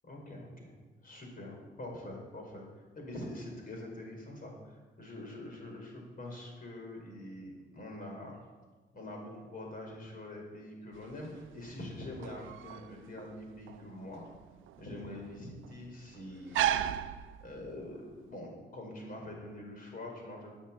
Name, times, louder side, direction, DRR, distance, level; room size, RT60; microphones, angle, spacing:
voice 1, 0.0-0.7 1.0-2.6 2.9-8.5 8.9-14.3 14.8-16.7 17.1-20.5, left 1 dB, 45° left, 0 dB, 5.2 m, -44 dB
sound 1, 10.9-17.9, right 11 dB, 80° right, 0.6 m, -37 dB
9.8 x 9.1 x 8.8 m, 1.3 s
cardioid pair, 90°, 20 cm